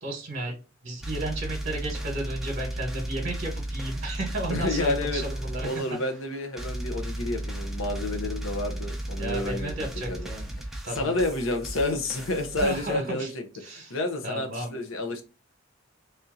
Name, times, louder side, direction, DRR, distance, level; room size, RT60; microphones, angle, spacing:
voice 1, 0.0-0.6 0.8-5.8 9.2-10.6 10.8-11.1 12.6-13.3 13.6-13.9 14.2-14.8, right 2 dB, 50° right, 1 dB, 1.0 m, -33 dB
sound 1, 1.0-6.3 6.6-13.0, right 1 dB, ahead, 0.6 m, -35 dB
voice 2, 4.5-5.2 5.6-9.7 10.1-10.3 10.9-13.4 13.7-15.2, left 2 dB, 75° left, 5 dB, 0.8 m, -29 dB
3.5 x 2.8 x 3.8 m, 0.32 s
head